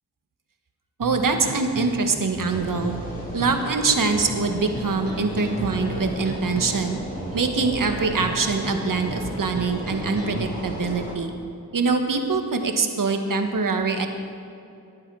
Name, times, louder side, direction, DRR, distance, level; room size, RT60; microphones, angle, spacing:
sound 1, 1.0-10.6, right 2 dB, 35° right, 2.3 m, -36 dB
voice 1, 1.0-3.0 3.3-7.0 7.3-11.3 11.7-14.1, right 4 dB, 55° right, 4 dB, 1.6 m, -24 dB
sound 2, 2.4-11.1, left 1 dB, 20° left, 4.0 m, -36 dB
19.0 x 11.5 x 4.8 m, 2.7 s
wide cardioid pair, 90°, 39 cm